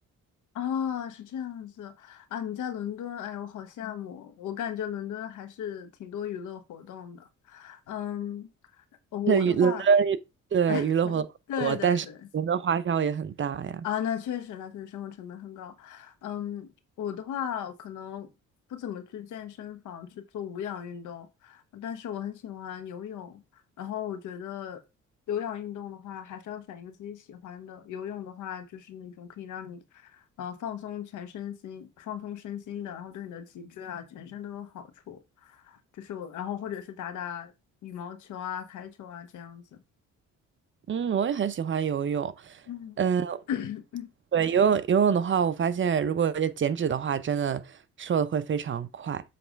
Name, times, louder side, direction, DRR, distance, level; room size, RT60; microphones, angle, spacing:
voice 1, 0.5-8.5 9.1-9.9 10.7-11.2 11.5-12.2 13.8-16.7 17.0-18.3 18.7-23.4 23.8-24.8 25.3-37.5 37.8-39.7 42.7-43.0 43.5-44.1, left 9 dB, 80° left, 1.2 m, -36 dB
voice 2, 9.3-10.2 10.5-11.2 11.6-12.0 12.3-13.8 40.9-42.6 43.0-43.4 44.3-49.2, right 7 dB, 40° right, 0.6 m, -25 dB
7.7 x 3.3 x 5.1 m
cardioid pair, 90°, 30 cm